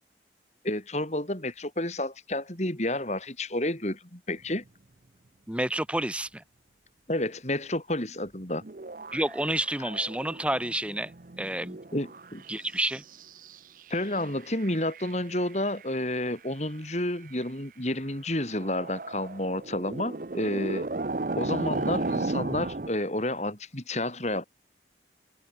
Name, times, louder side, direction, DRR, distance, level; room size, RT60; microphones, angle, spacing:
voice 1, 0.6-4.6 7.1-8.6 11.9-12.4 13.9-20.9 21.4-24.4, left 1 dB, 40° left, 5.3 m, -30 dB
voice 2, 5.5-6.4 9.1-11.8 12.5-13.0, right 1 dB, 5° right, 2.5 m, -29 dB
sound 1, 8.5-12.6 12.9-15.8 17.3-17.4 18.4-22.9, right 2 dB, 50° right, 0.8 m, -35 dB
head